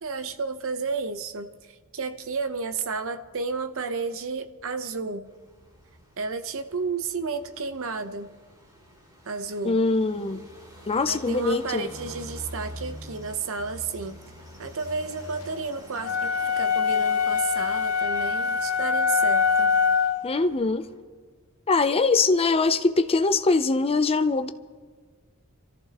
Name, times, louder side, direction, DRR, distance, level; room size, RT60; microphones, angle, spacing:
voice 1, 0.0-5.3 6.2-8.3 9.2-9.8 11.1-14.2 14.6-16.3 16.6-19.8, right 4 dB, 65° right, 9 dB, 0.8 m, -32 dB
sound 1, 5.3-21.0, equal, 20° right, 3.3 m, -46 dB
voice 2, 9.6-10.4 10.9-11.9 20.2-20.9 21.7-24.5, left 3 dB, 25° left, 11 dB, 0.5 m, -22 dB
sound 2, 16.0-20.3, left 6 dB, 70° left, 1.2 m, -23 dB
27.0 x 14.0 x 3.0 m, 1.5 s
head